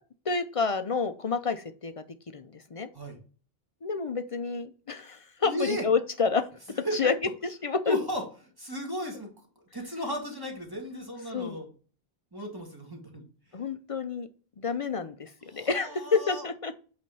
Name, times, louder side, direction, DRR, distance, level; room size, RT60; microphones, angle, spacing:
voice 1, 0.3-2.0 2.3-2.9 3.8-6.5 6.9-7.1 7.6-8.0 11.3-11.6 13.5-14.3 14.6-16.8, left 5 dB, 45° left, 10 dB, 0.5 m, -29 dB
voice 2, 5.4-5.8 6.7-7.0 7.8-8.2 8.6-9.3 9.7-11.7 12.3-13.2 15.5-16.5, equal, 20° right, 0 dB, 1.7 m, -35 dB
8.3 x 3.3 x 5.4 m, 0.40 s
omnidirectional pair, 1.0 m